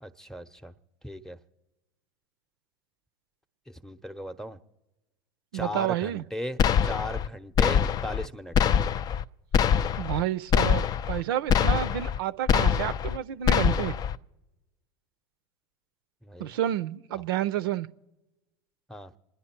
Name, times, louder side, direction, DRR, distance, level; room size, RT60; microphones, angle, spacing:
voice 1, 0.0-0.7 1.0-1.4 3.7-4.6 5.5-8.6 16.2-16.6 17.1-17.2 18.9-19.1, left 1 dB, 5° left, 12 dB, 0.8 m, -37 dB
voice 2, 5.5-6.2 10.0-13.9 16.4-17.9, right 12 dB, 70° right, 15 dB, 0.5 m, -30 dB
sound 1, 6.6-7.3 7.6-8.3 8.6-9.2 9.5-10.2 10.5-11.2 11.5-12.2 12.5-13.2 13.5-14.2, left 8 dB, 30° left, 0.4 m, -24 dB
28.0 x 10.5 x 4.4 m, 1.0 s
hypercardioid pair, 80°, 12 cm